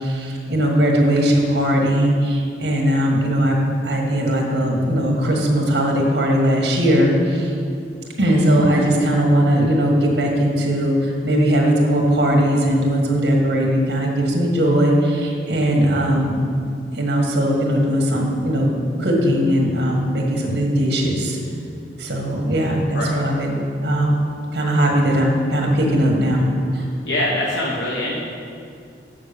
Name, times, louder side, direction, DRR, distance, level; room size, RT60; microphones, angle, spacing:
voice 1, 0.0-3.5 3.8-7.5 8.2-16.3 16.9-18.7 19.0-21.4 22.0-23.5 23.8-24.1 24.5-26.5 26.7-26.8, equal, 65° right, 0 dB, 1.6 m, -19 dB
voice 2, 22.9-23.3 27.0-28.1, left 1 dB, 90° left, -4 dB, 1.2 m, -23 dB
7.4 x 6.6 x 6.9 m, 2.4 s
head